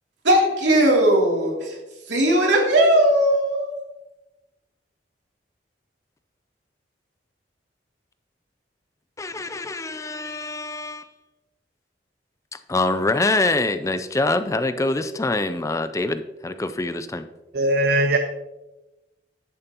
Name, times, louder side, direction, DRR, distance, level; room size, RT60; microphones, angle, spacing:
voice 1, 0.2-1.8 2.1-3.7, right 1 dB, 80° right, -2 dB, 2.9 m, -18 dB
voice 2, 9.2-11.0 12.7-17.2, left 2 dB, 15° left, 11 dB, 0.4 m, -24 dB
voice 3, 17.5-18.2, right 2 dB, 60° right, 6 dB, 0.6 m, -19 dB
10.5 x 8.7 x 2.9 m, 1.0 s
head